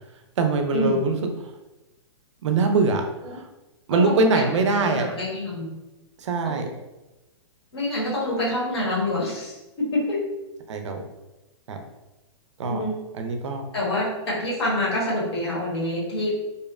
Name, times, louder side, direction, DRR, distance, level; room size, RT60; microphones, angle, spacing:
voice 1, 0.4-1.2 2.4-3.4 3.9-5.1 6.2-6.7 10.7-11.0 11.7-11.8 12.6-12.8 13.2-13.6, right 3 dB, 70° right, 5 dB, 0.4 m, -23 dB
voice 2, 3.9-4.5 4.7-5.8 6.4-6.6 7.7-10.2 12.7-12.9 13.7-16.4, left 1 dB, 55° left, -5 dB, 1.0 m, -26 dB
2.6 x 2.0 x 2.3 m, 1.0 s
hypercardioid pair, 170°, 16 cm